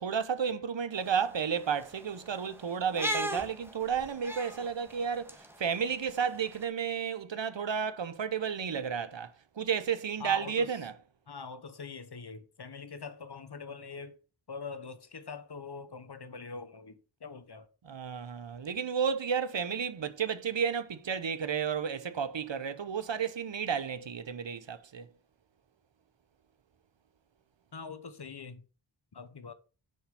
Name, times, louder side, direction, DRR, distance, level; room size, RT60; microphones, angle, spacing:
voice 1, 0.0-10.9 17.9-25.1, right 7 dB, 65° right, 0.9 m, -32 dB
sound 1, 0.9-6.6, equal, 5° right, 1.6 m, -40 dB
voice 2, 10.2-10.8 11.3-14.2 14.5-17.7 27.7-28.6 29.1-29.5, left 5 dB, 50° left, 1.2 m, -43 dB
6.8 x 5.6 x 5.4 m
cardioid pair, 50°, 49 cm